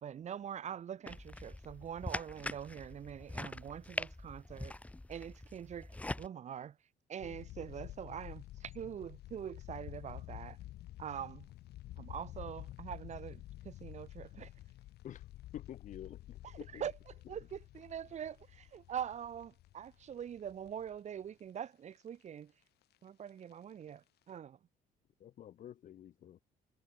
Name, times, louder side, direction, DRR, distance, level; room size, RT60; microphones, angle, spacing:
voice 1, 0.0-4.7 5.1-5.9 6.2-6.8 7.1-10.6 11.0-11.5 12.0-14.5 16.4-22.5 23.0-24.6, right 9 dB, 45° right, 1.0 m, -44 dB
sound 1, 1.1-6.3, left 2 dB, 10° left, 1.0 m, -43 dB
sound 2, 7.2-21.2 21.6-21.7 21.9-22.2 23.1-23.5 23.9-24.0 24.3-24.4, left 15 dB, 75° left, 3.1 m, -50 dB
voice 2, 15.5-16.8 25.2-26.4, left 11 dB, 50° left, 0.7 m, -49 dB
cardioid pair, 110°, 17 cm